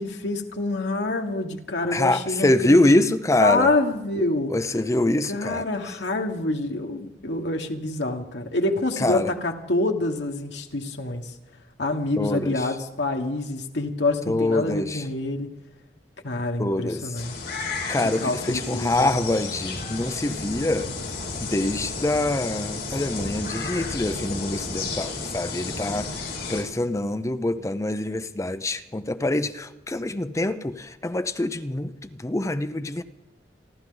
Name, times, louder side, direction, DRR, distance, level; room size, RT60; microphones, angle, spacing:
voice 1, 0.0-3.0 3.4-4.6 5.3-11.3 11.8-15.5 16.2-17.4 18.2-19.3, left 2 dB, 85° left, 1.5 m, -26 dB
voice 2, 1.8-3.7 4.5-5.6 9.0-9.3 12.2-12.6 14.3-15.0 16.6-17.0 17.9-20.9 21.4-26.1 26.5-33.0, left 1 dB, 20° left, 0.6 m, -25 dB
sound 1, 17.1-26.6, left 3 dB, 65° left, 4.6 m, -32 dB
29.5 x 12.0 x 3.9 m
head